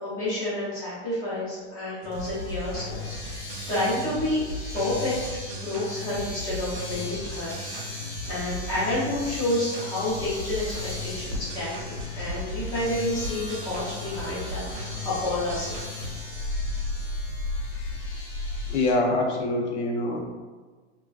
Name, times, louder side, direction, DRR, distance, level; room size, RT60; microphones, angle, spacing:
voice 1, 0.0-4.4 4.7-5.2 5.5-7.6 7.9-10.6 11.0-15.8, left 1 dB, 10° left, -10 dB, 0.6 m, -29 dB
sound 1, 2.0-16.1, left 2 dB, 60° right, 0.5 m, -37 dB
Domestic sounds home sounds, 2.1-18.9, left 1 dB, 30° left, 0.9 m, -40 dB
sound 2, 10.3-18.7, left 2 dB, 85° right, 0.9 m, -35 dB
voice 2, 18.7-20.2, left 2 dB, 90° left, 0 dB, 0.7 m, -25 dB
2.4 x 2.2 x 2.3 m, 1.4 s
supercardioid pair, 165°, 34 cm